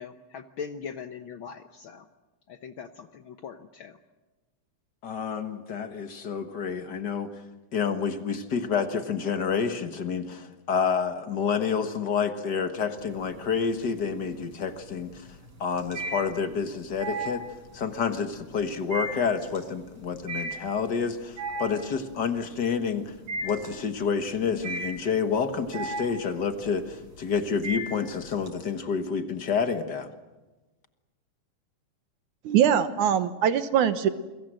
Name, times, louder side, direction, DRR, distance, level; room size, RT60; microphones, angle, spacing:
voice 1, 0.0-2.0 2.5-3.9, left 6 dB, 85° left, 8 dB, 1.1 m, -40 dB
voice 2, 5.0-7.3 7.7-15.3 15.6-17.4 17.7-23.1 23.4-30.1, left 6 dB, 50° left, 8 dB, 1.3 m, -29 dB
sound 1, 13.0-13.6 14.0-28.5, right 2 dB, 55° right, 7.3 m, -36 dB
voice 3, 32.4-34.1, right 9 dB, 70° right, 11 dB, 2.4 m, -22 dB
29.0 x 22.5 x 7.7 m, 1.1 s
omnidirectional pair, 3.7 m